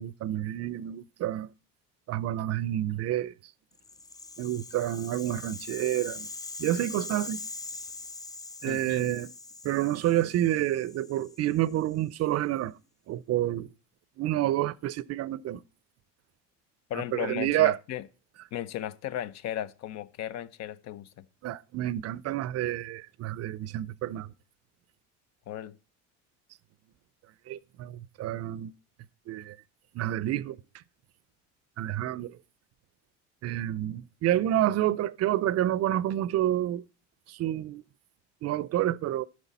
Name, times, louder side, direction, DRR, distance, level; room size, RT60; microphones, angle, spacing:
voice 1, 0.0-1.5 2.1-3.3 4.4-6.3 6.6-7.4 8.6-9.3 9.6-12.7 13.1-13.7 14.2-15.6 17.1-17.8 21.4-24.3 27.5-28.7 29.3-29.6 29.9-30.6 31.8-32.4 33.4-36.8 37.3-37.8 38.4-39.2, right 13 dB, 50° right, 0.6 m, -29 dB
Rattle (instrument), 3.8-12.0, left 3 dB, 10° left, 0.4 m, -42 dB
voice 2, 8.7-9.0 16.9-18.0 18.5-21.3 25.5-25.7, left 11 dB, 55° left, 0.7 m, -36 dB
11.0 x 6.4 x 4.1 m
supercardioid pair, 90°, 33 cm